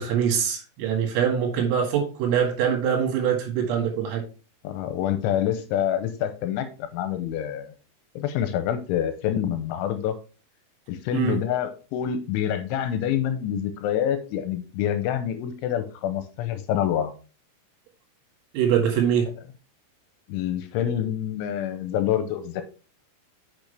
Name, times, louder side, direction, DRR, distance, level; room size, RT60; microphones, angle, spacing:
voice 1, 0.0-4.2 11.1-11.4 18.5-19.3, right 8 dB, 85° right, 2 dB, 4.6 m, -23 dB
voice 2, 4.6-7.7 8.2-10.2 10.9-17.1 20.3-22.6, left 10 dB, 80° left, 9 dB, 2.9 m, -27 dB
8.6 x 6.0 x 3.3 m, 0.35 s
omnidirectional pair, 5.9 m